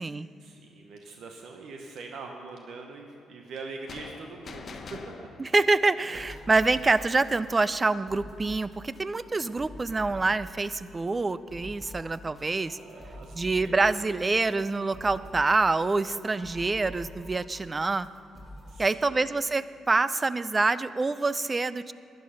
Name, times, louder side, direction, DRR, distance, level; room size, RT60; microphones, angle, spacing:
voice 1, 0.4-5.3 12.7-13.9 18.7-19.3, right 3 dB, 70° right, 3 dB, 1.0 m, -43 dB
sound 1, 3.9-7.2, left 4 dB, 50° left, 0.9 m, -45 dB
voice 2, 5.4-12.8 13.3-18.1 18.8-21.9, right 3 dB, 25° right, 16 dB, 0.4 m, -26 dB
sound 2, 6.0-18.8, equal, ahead, 2.2 m, -47 dB
11.5 x 10.5 x 5.6 m, 2.7 s
cardioid pair, 90°, 0 cm